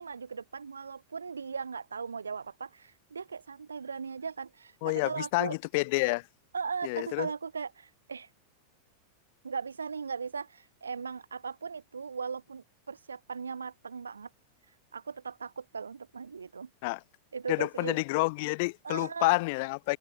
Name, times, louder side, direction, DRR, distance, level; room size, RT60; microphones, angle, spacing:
voice 1, 0.0-5.6 6.5-8.3 9.4-14.3 14.9-16.7 17.3-18.2 18.8-19.4, right 5 dB, 75° right, 3.1 m, -38 dB
voice 2, 4.8-6.3 6.8-7.3 16.8-17.0 17.5-20.0, left 27 dB, 50° left, 0.4 m, -29 dB
figure-of-eight pair, 90°, 0 cm